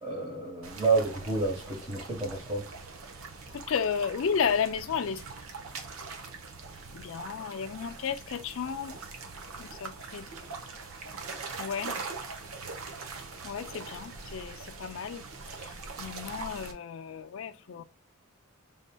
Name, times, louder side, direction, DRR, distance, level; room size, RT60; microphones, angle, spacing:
voice 1, 0.0-2.6, right 3 dB, 20° right, 1.2 m, -29 dB
sound 1, 0.6-16.7, right 4 dB, 75° right, 0.9 m, -42 dB
voice 2, 3.5-5.2 6.9-9.0 9.6-10.3 11.6-12.0 13.4-15.3 15.6-17.8, left 6 dB, 65° left, 0.4 m, -33 dB
5.4 x 3.5 x 2.2 m
head